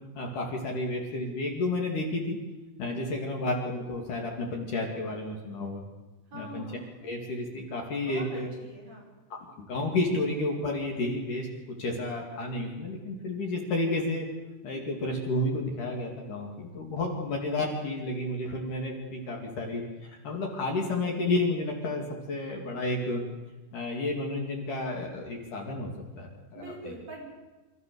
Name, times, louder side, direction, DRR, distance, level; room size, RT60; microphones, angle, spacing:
voice 1, 0.1-2.4 2.8-5.8 6.3-6.7 7.0-8.5 9.6-14.3 14.6-23.2 23.7-25.9 26.2-26.9, left 2 dB, 50° left, 0 dB, 3.3 m, -31 dB
voice 2, 6.3-7.0 8.0-9.1 26.5-27.2, right 2 dB, 30° right, -3 dB, 6.6 m, -43 dB
27.5 x 13.5 x 6.9 m, 1.2 s
omnidirectional pair, 5.9 m